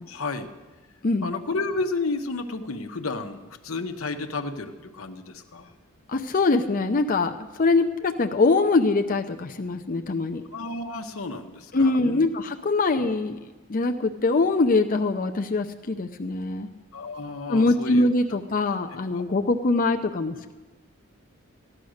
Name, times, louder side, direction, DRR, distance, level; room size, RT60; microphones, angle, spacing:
voice 1, 0.1-0.5 1.2-5.7 10.5-12.3 16.9-18.4, left 3 dB, 90° left, 6 dB, 1.1 m, -32 dB
voice 2, 6.1-10.4 11.7-13.4 13.7-16.7 17.5-20.5, left 3 dB, 40° left, 6 dB, 0.6 m, -23 dB
15.0 x 11.0 x 6.4 m, 1.3 s
head